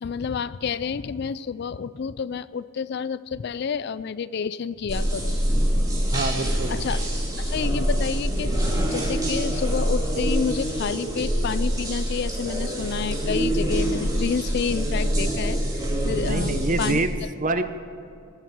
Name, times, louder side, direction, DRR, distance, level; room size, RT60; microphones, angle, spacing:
voice 1, 0.0-5.4 5.8-5.9 6.1-6.3 6.7-7.0 7.4-17.0, left 6 dB, 50° left, 17 dB, 0.3 m, -29 dB
sound 1, 4.9-16.9, equal, 20° right, 2.8 m, -25 dB
voice 2, 6.1-6.9 16.2-17.7, right 2 dB, 40° right, 10 dB, 0.7 m, -26 dB
20.5 x 9.2 x 6.0 m, 2.5 s
head